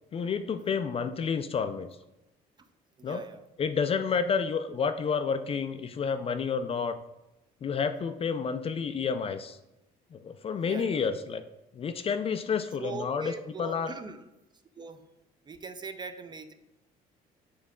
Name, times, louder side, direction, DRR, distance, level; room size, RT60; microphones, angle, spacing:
voice 1, 0.1-1.9 3.0-3.2 3.6-7.0 7.6-9.6 10.1-11.4 11.8-13.3 13.6-13.9, left 6 dB, 35° left, 9 dB, 0.4 m, -30 dB
voice 2, 3.0-3.4 10.6-11.0 12.8-14.3 14.8-15.0 15.5-16.5, right 4 dB, 25° right, 8 dB, 0.5 m, -41 dB
7.6 x 4.0 x 3.6 m, 0.93 s
cardioid pair, 110°, 17 cm